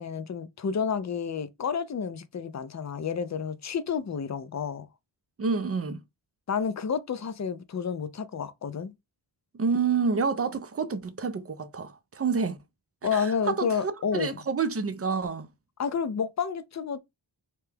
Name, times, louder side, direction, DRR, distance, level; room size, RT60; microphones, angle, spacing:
voice 1, 0.0-4.9 6.5-8.9 13.0-14.4 15.8-17.0, left 6 dB, 40° left, 0.4 m, -30 dB
voice 2, 5.4-6.0 9.5-12.6 13.1-15.5, right 5 dB, 30° right, 0.4 m, -28 dB
2.9 x 2.2 x 3.3 m
wide cardioid pair, 70°, 48 cm